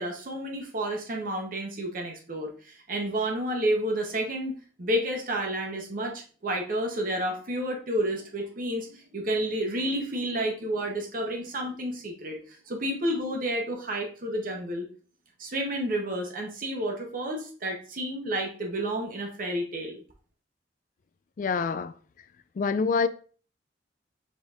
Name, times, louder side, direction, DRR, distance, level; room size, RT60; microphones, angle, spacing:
voice 1, 0.0-14.9 15.4-20.0, right 1 dB, 50° right, 0.8 m, -30 dB
voice 2, 21.4-21.9 22.6-23.1, left 5 dB, 45° left, 0.3 m, -26 dB
5.0 x 4.0 x 2.4 m
head